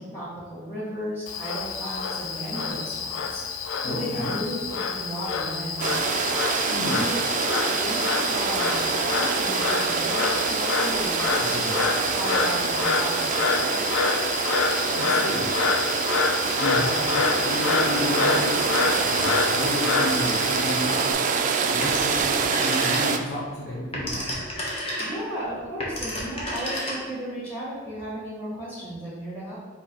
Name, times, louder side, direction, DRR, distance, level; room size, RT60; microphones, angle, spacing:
voice 1, 0.1-3.4 3.8-6.3 6.9-13.8 25.0-29.5, equal, 10° left, -11 dB, 1.5 m, -35 dB
Frog, 1.3-21.1, left 5 dB, 85° left, 0.4 m, -27 dB
voice 2, 3.8-4.3 6.7-7.0 11.3-11.8 14.9-15.5 16.5-18.8 19.0-21.2 21.7-24.3, left 1 dB, 50° left, -5 dB, 0.7 m, -32 dB
sound 1, 5.8-23.2, right 5 dB, 40° right, 0.3 m, -25 dB
Telephone, 21.8-23.4 23.7-27.3, left 1 dB, 30° left, 0.9 m, -31 dB
4.5 x 2.7 x 4.3 m, 1.4 s
head